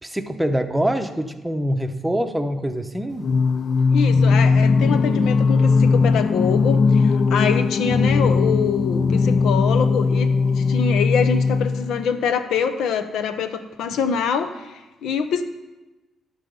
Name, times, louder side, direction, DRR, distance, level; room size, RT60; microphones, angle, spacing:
voice 1, 0.0-3.3, equal, 5° right, 7 dB, 0.8 m, -24 dB
Singing, 3.2-12.1, left 4 dB, 50° left, 0.3 m, -18 dB
voice 2, 3.9-10.3 10.6-15.4, left 6 dB, 80° left, 9 dB, 0.7 m, -25 dB
11.5 x 4.2 x 6.9 m, 1.1 s
cardioid pair, 90°, 0 cm